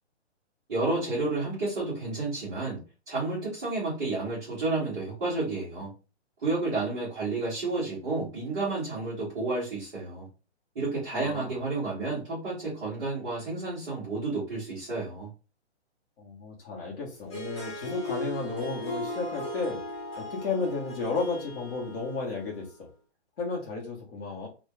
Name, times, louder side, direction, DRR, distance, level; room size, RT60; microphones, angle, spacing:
voice 1, 0.7-2.8 3.1-5.9 6.4-10.3 10.7-15.3, right 3 dB, 5° right, -14 dB, 0.4 m, -31 dB
voice 2, 11.1-11.5 16.2-19.8 20.2-22.9 23.4-24.5, left 4 dB, 55° left, -3 dB, 1.1 m, -33 dB
Harp, 17.2-22.6, left 1 dB, 25° left, 0.9 m, -37 dB
2.4 x 2.3 x 3.2 m, 0.33 s
hypercardioid pair, 160°, 35 cm